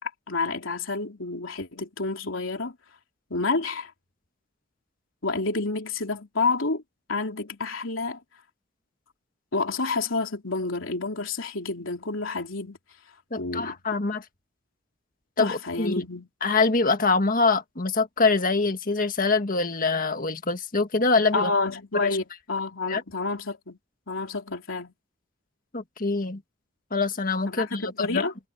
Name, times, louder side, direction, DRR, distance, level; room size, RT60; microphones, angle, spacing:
voice 1, 0.0-2.8 3.3-3.9 5.2-6.8 7.1-8.2 9.5-12.8 13.3-13.8 15.4-16.3 21.3-23.8 24.1-24.9 27.5-28.3, left 3 dB, 90° left, 3.1 m, -29 dB
voice 2, 13.3-14.2 15.4-16.0 16.4-21.5 22.0-22.2 22.9-23.0 25.7-26.4 26.9-28.2, left 3 dB, 45° left, 1.7 m, -24 dB
head